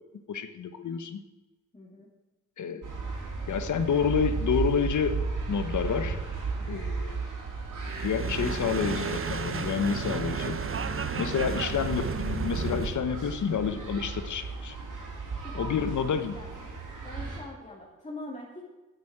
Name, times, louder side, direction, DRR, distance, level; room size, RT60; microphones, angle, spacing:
voice 1, 0.3-1.2 2.6-2.8 3.5-5.2 5.5-6.2 6.7-7.2 8.0-10.6 11.2-14.8 15.5-16.4, left 7 dB, 75° left, 10 dB, 1.2 m, -29 dB
voice 2, 1.7-2.1 15.4-15.7 16.1-16.7 17.0-18.6, left 1 dB, 25° left, -4 dB, 2.9 m, -43 dB
sound 1, 2.8-17.4, right 4 dB, 75° right, 3.7 m, -35 dB
sound 2, 7.8-13.0, right 5 dB, 45° right, 1.1 m, -32 dB
8.5 x 8.5 x 8.8 m, 1.1 s
cardioid pair, 70°, 31 cm